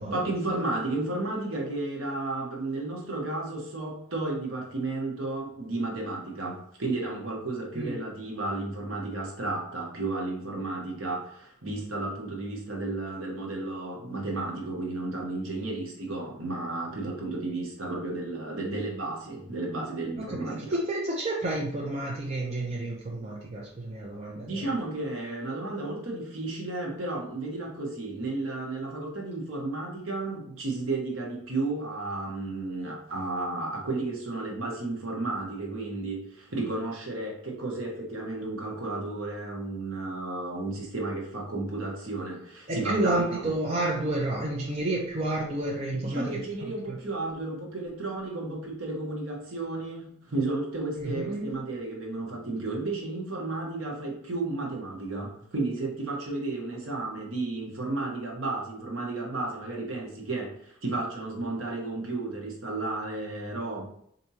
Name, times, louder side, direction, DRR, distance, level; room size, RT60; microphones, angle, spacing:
voice 1, 0.1-20.8 24.4-43.5 45.9-63.9, right 2 dB, 60° right, -1 dB, 1.0 m, -33 dB
voice 2, 20.1-24.7 42.7-47.0 51.0-51.5, right 2 dB, 30° right, -3 dB, 0.5 m, -30 dB
4.6 x 2.7 x 2.8 m, 0.66 s
head